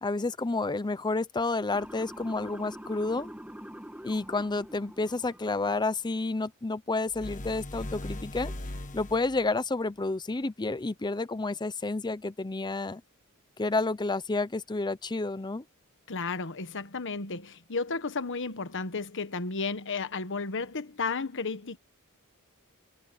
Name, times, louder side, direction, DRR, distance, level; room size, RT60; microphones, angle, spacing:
voice 1, 0.0-3.3 4.0-8.5 8.9-13.0 13.6-15.6, left 3 dB, 20° left, 0.6 m, -30 dB
Motor vehicle (road) / Siren, 1.7-5.9, equal, 5° right, 1.5 m, -45 dB
sound 1, 7.1-9.5, left 1 dB, 35° left, 1.4 m, -39 dB
voice 2, 16.1-21.8, left 4 dB, 60° left, 1.3 m, -33 dB
head